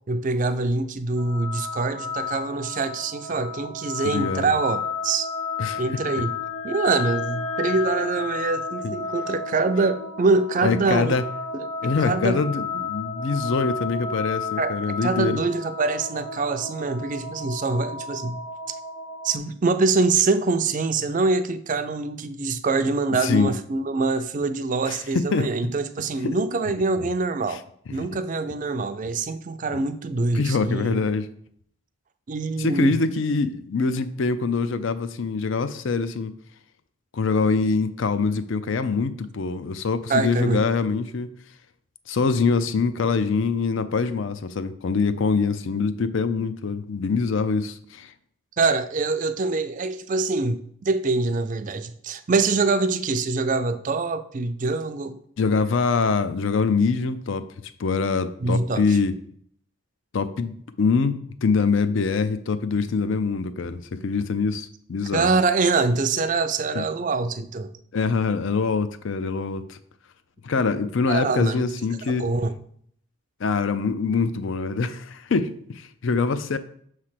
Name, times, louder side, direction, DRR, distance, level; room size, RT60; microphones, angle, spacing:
voice 1, 0.1-5.3 5.8-6.3 6.6-11.2 11.5-11.7 12.0-12.4 14.6-14.7 15.0-18.5 19.2-27.6 27.9-31.0 32.3-33.0 40.1-40.6 48.6-55.2 58.4-59.0 65.1-67.7 71.1-71.6 72.2-72.5, right 3 dB, 35° right, 10 dB, 0.4 m, -24 dB
sound 1, 1.2-19.4, left 4 dB, 30° left, 0.8 m, -32 dB
voice 2, 4.0-4.5 5.6-5.8 8.8-8.9 10.6-11.2 11.8-15.4 23.2-23.5 24.9-25.5 27.5-27.6 30.3-31.2 32.6-36.3 37.1-41.3 42.1-48.1 55.4-57.5 57.8-59.1 60.1-65.4 66.8-66.9 67.9-69.8 70.4-72.2 73.4-76.6, left 4 dB, 60° left, 13 dB, 0.4 m, -24 dB
6.6 x 3.2 x 5.7 m, 0.63 s
head